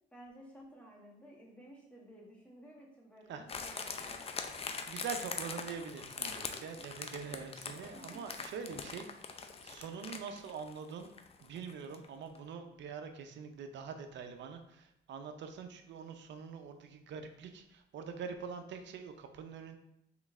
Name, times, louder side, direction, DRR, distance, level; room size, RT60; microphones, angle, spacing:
voice 1, 0.1-4.2 5.9-6.8 7.9-8.2, equal, 5° left, -4 dB, 1.4 m, -55 dB
sound 1, 3.5-12.1 12.4-12.5, left 5 dB, 30° left, 0.4 m, -43 dB
voice 2, 4.1-4.4 4.9-9.1 9.6-11.1 11.4-19.8, right 6 dB, 65° right, 7 dB, 0.6 m, -44 dB
3.8 x 3.1 x 3.6 m, 0.78 s
cardioid pair, 90°, 20 cm